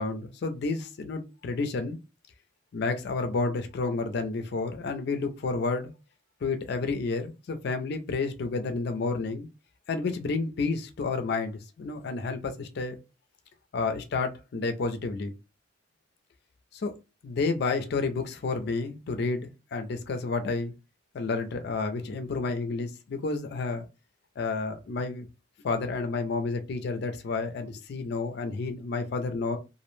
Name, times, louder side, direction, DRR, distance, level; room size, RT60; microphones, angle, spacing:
voice 1, 0.0-2.0 2.7-5.9 6.4-9.5 9.9-13.0 13.7-15.3 16.7-16.9 17.2-20.7 21.1-23.9 24.4-25.3 25.6-29.6, left 3 dB, 55° left, 0.4 m, -30 dB
2.5 x 2.0 x 3.0 m
head